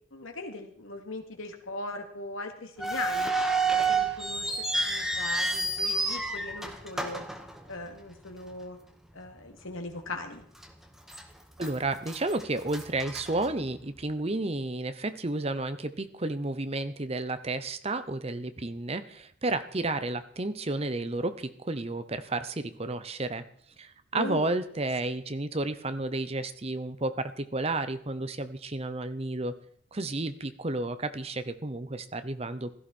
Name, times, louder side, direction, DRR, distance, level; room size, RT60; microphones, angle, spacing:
voice 1, 0.1-3.3 3.7-7.2 7.7-8.8 9.1-10.4 24.1-24.5, left 2 dB, 85° left, 3 dB, 2.5 m, -39 dB
sound 1, 2.8-8.1 8.4-8.5 9.2-9.5 9.9-10.0 10.6-11.2 11.6-14.0, right 3 dB, ahead, 1.6 m, -30 dB
voice 2, 11.6-23.5 23.8-29.6 29.9-32.7, right 2 dB, 30° right, 11 dB, 0.8 m, -32 dB
16.5 x 14.0 x 4.4 m, 0.62 s
head